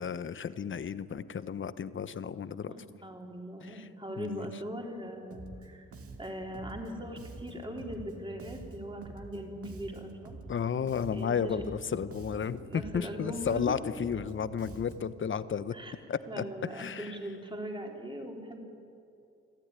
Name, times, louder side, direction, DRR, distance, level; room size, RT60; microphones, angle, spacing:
voice 1, 0.0-2.7 3.6-3.9 4.2-4.5 10.5-15.7 16.1-16.4 16.7-17.2, left 7 dB, 40° left, 14 dB, 1.0 m, -33 dB
voice 2, 2.7-5.8 6.2-10.4 11.1-11.6 12.6-13.8 15.7-15.9 16.3-18.6, equal, 15° right, 1 dB, 4.0 m, -40 dB
Bass guitar, 5.3-5.7 5.9-10.6 10.9-15.2, right 3 dB, 50° right, 2.4 m, -47 dB
27.0 x 13.5 x 9.8 m, 2.6 s
cardioid pair, 90°, 30 cm